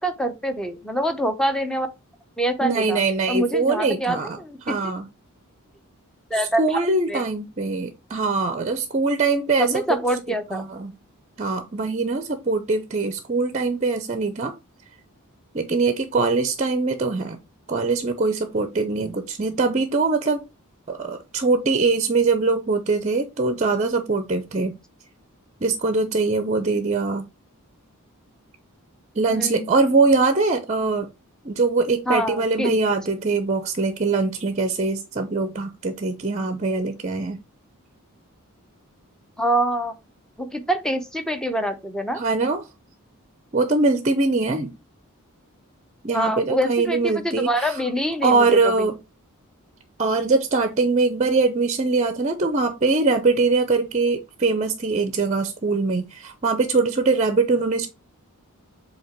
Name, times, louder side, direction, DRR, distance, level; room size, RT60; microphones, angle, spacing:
voice 1, 0.0-1.9 2.4-3.0 3.3-4.7 6.3-6.8 7.1-7.2 9.6-10.7 29.3-29.7 32.1-32.8 39.4-40.0 40.4-42.2 46.1-48.9, right 1 dB, 5° left, 0.8 m, -25 dB
voice 2, 2.6-4.4 4.6-5.0 6.6-9.8 10.3-10.9 11.4-14.5 15.5-17.4 17.7-20.4 20.9-24.7 25.6-27.3 29.2-31.1 31.4-37.4 42.2-42.6 43.5-44.7 46.0-47.8 48.2-49.0 50.0-57.9, right 3 dB, 30° right, 0.6 m, -22 dB
7.6 x 2.9 x 4.5 m
head